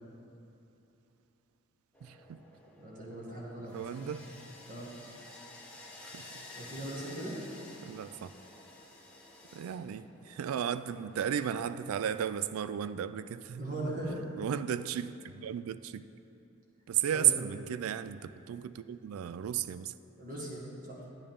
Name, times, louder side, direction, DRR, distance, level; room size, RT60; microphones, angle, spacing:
sound 1, 1.9-12.5, left 2 dB, 5° left, 0.8 m, -52 dB
voice 1, 2.0-2.4 3.6-4.2 6.0-6.4 7.8-8.3 9.5-13.6 14.4-16.0 16.9-19.9, right 9 dB, 80° right, 13 dB, 0.3 m, -34 dB
voice 2, 2.8-3.7 4.0-4.1 4.7-4.9 6.6-7.5 13.6-14.2 17.1-17.3 20.2-21.0, right 1 dB, 40° right, -4 dB, 1.6 m, -39 dB
10.0 x 8.7 x 3.6 m, 2.8 s
head